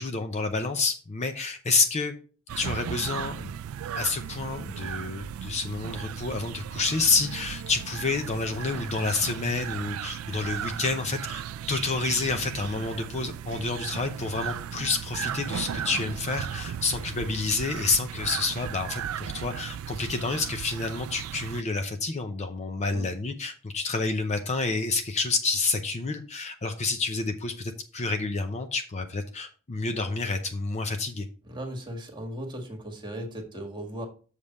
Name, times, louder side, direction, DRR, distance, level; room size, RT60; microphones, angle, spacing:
voice 1, 0.0-2.1 2.6-3.5 3.9-31.3, left 3 dB, 35° left, 7 dB, 0.6 m, -29 dB
sound 1, 2.5-21.6, right 9 dB, 90° right, 0.3 m, -36 dB
voice 2, 31.4-34.1, right 1 dB, 20° right, 2 dB, 1.7 m, -37 dB
6.7 x 5.3 x 4.2 m, 0.39 s
head